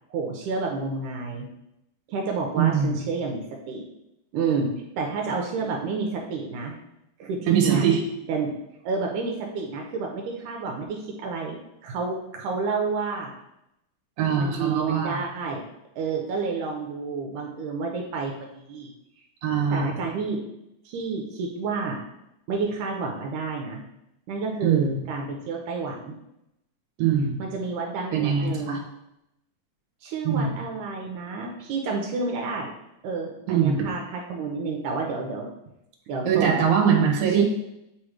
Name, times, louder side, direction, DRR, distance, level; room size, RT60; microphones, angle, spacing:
voice 1, 0.1-1.5 2.1-3.8 4.3-6.8 7.2-7.9 8.3-8.5 8.8-13.3 14.3-15.6 16.0-18.9 19.7-20.4 20.9-22.0 22.5-23.8 24.3-26.2 27.4-28.8 30.0-32.7 33.0-35.5 36.1-36.7 37.3-37.4, right 4 dB, 80° right, 0 dB, 2.2 m, -30 dB
voice 2, 2.6-3.0 7.5-8.0 14.2-15.2 19.4-20.0 24.6-25.0 27.0-27.4 28.1-28.8 30.2-30.6 33.5-33.9 36.2-37.4, right 7 dB, 65° right, 0 dB, 2.2 m, -22 dB
8.1 x 3.1 x 4.9 m, 0.85 s
omnidirectional pair, 3.7 m